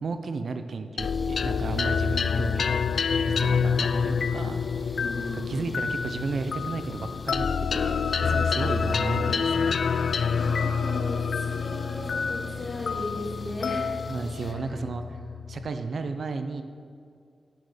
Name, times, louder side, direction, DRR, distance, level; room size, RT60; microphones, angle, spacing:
voice 1, 0.0-2.8 3.3-7.5 7.7-9.8 14.1-15.2 15.5-16.6, right 4 dB, 60° right, 8 dB, 0.6 m, -34 dB
sound 1, 1.0-15.7, left 6 dB, 70° left, 0.3 m, -27 dB
sound 2, 1.0-14.5, left 2 dB, 30° left, 0.7 m, -44 dB
voice 2, 5.0-5.6 10.3-13.9 14.4-14.5, left 1 dB, 45° left, -4 dB, 3.1 m, -36 dB
10.5 x 8.7 x 5.0 m, 2.4 s
wide cardioid pair, 105°, 0 cm